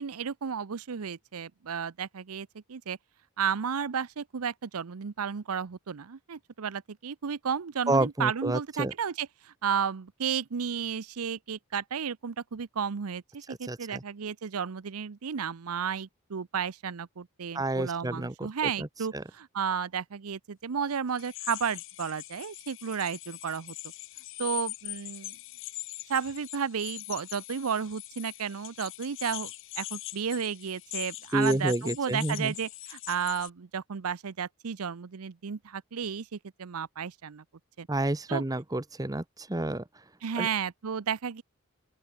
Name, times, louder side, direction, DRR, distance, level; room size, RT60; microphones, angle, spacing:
voice 1, 0.0-3.0 3.4-23.7 24.4-25.4 26.1-29.5 29.8-37.4 37.8-37.9 38.3-38.4 40.2-41.4, right 7 dB, 85° right, 0.6 m, -33 dB
voice 2, 7.9-8.9 13.5-14.0 17.5-18.5 18.8-18.9 19.1-19.2 31.3-32.5 37.9-39.8 40.4-40.5, right 2 dB, 15° right, 0.8 m, -29 dB
sound 1, 21.2-33.5, left 18 dB, 60° left, 1.1 m, -42 dB
open air
head